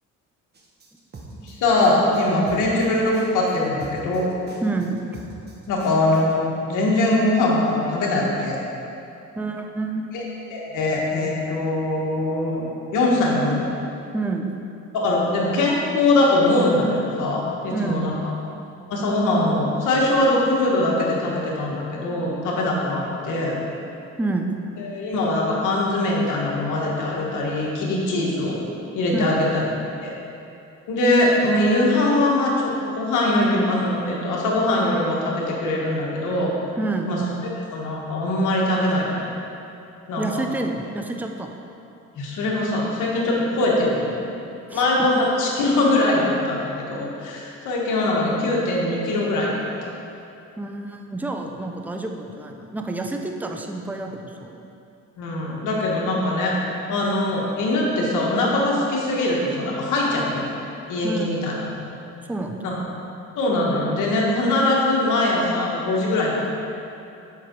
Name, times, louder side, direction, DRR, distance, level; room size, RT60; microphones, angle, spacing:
sound 1, 0.5-6.3, right 2 dB, 35° right, 1.2 m, -42 dB
voice 1, 1.4-4.3 5.7-8.6 10.1-10.2 10.5-12.7 12.9-13.7 14.9-18.3 18.9-23.6 24.8-28.6 28.9-29.6 30.0-30.1 30.9-36.5 37.1-39.3 40.1-40.4 42.1-44.2 44.7-49.9 55.2-60.4 60.9-62.0 62.6-62.8 63.4-66.3, left 2 dB, 85° left, -3 dB, 1.6 m, -22 dB
voice 2, 4.6-5.0 9.4-10.2 14.1-14.5 17.7-18.0 24.2-24.6 29.1-29.3 36.8-37.2 40.2-41.5 44.7-44.9 50.6-54.6 61.0-61.4 62.3-62.6, right 2 dB, 5° right, 3 dB, 0.6 m, -28 dB
7.3 x 6.0 x 4.6 m, 2.7 s
cardioid pair, 90°, 30 cm